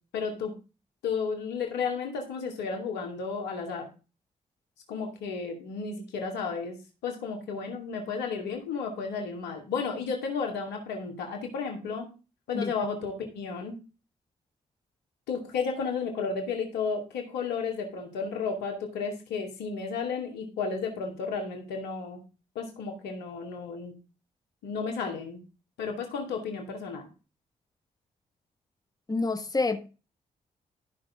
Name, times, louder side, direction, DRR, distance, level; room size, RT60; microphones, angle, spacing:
voice 1, 0.1-0.5 1.0-3.8 4.9-6.8 7.0-12.1 12.5-13.8 15.3-22.2 22.5-23.9 24.6-25.4 25.8-27.1, left 5 dB, 90° left, 2.3 m, -33 dB
voice 2, 29.1-29.9, left 3 dB, 20° left, 1.4 m, -28 dB
13.5 x 5.8 x 3.6 m
supercardioid pair, 45°, 17 cm